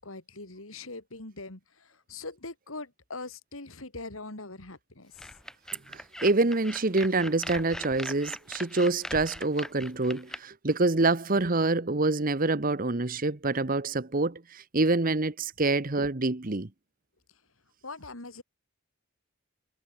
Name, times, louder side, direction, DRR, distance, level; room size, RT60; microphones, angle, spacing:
voice 1, 0.0-5.3 17.8-18.4, left 3 dB, 80° left, 3.4 m, -42 dB
sound 1, 5.2-10.4, left 1 dB, 5° left, 1.1 m, -40 dB
voice 2, 5.9-16.7, right 2 dB, 40° right, 1.1 m, -26 dB
head